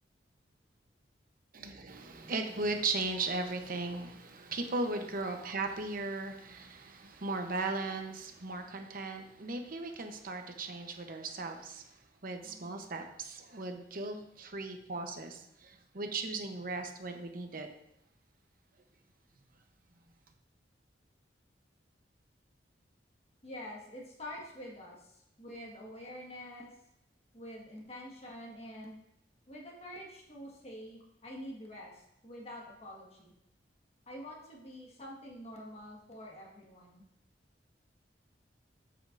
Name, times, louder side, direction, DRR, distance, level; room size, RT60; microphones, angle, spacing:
voice 1, 1.5-11.8 12.2-17.7, right 3 dB, 50° right, 5 dB, 0.9 m, -37 dB
voice 2, 23.4-26.7 27.3-29.0 29.5-33.3 34.1-37.0, left 1 dB, 35° left, -2 dB, 1.6 m, -47 dB
8.0 x 7.8 x 2.6 m, 0.80 s
head